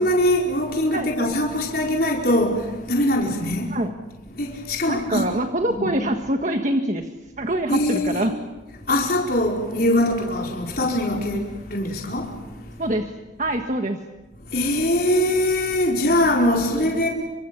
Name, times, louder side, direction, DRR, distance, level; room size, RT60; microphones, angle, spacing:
voice 1, 0.0-3.7 4.4-5.3 5.7-5.9 7.7-8.2 8.9-12.4 14.5-17.1, left 1 dB, 50° left, 4.8 m, -22 dB
voice 2, 4.9-7.1 7.4-8.3 12.8-13.1 13.4-14.0 16.7-16.9, right 1 dB, 40° right, 1.5 m, -24 dB
29.5 x 25.5 x 7.1 m
head